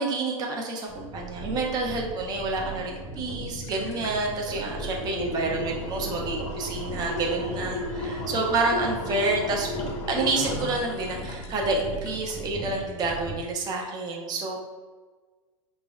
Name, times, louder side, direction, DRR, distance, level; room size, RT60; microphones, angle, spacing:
voice 1, 0.0-14.6, right 3 dB, 20° right, 0 dB, 0.4 m, -29 dB
sound 1, 0.9-13.3, right 2 dB, ahead, 0.8 m, -38 dB
sound 2, 3.0-3.1 3.4-12.4 12.8-12.9, left 2 dB, 50° left, 0.5 m, -35 dB
3.3 x 2.1 x 2.3 m, 1.4 s
hypercardioid pair, 100°, 18 cm